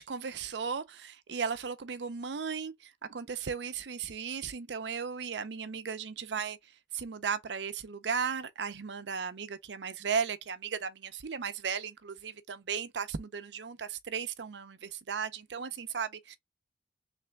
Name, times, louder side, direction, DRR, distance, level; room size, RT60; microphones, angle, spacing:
voice 1, 0.0-6.6 6.9-16.4, right 6 dB, 80° right, 0.6 m, -36 dB
3.3 x 3.3 x 3.3 m
head